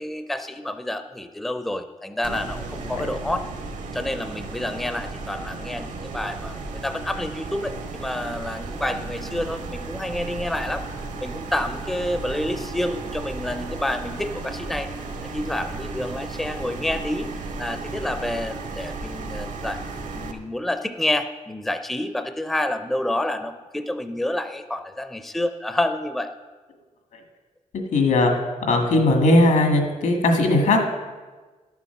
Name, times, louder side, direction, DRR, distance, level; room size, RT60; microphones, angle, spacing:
voice 1, 0.0-3.5 3.9-10.9 11.2-14.9 15.3-17.3 17.6-19.8 20.1-26.3, left 1 dB, ahead, 9 dB, 0.4 m, -28 dB
sound 1, 2.2-20.3, right 3 dB, 80° right, 1.2 m, -34 dB
voice 2, 27.9-28.3 28.7-30.8, left 2 dB, 80° left, 4 dB, 1.8 m, -18 dB
12.0 x 7.1 x 5.8 m, 1.3 s
wide cardioid pair, 170°, 13 cm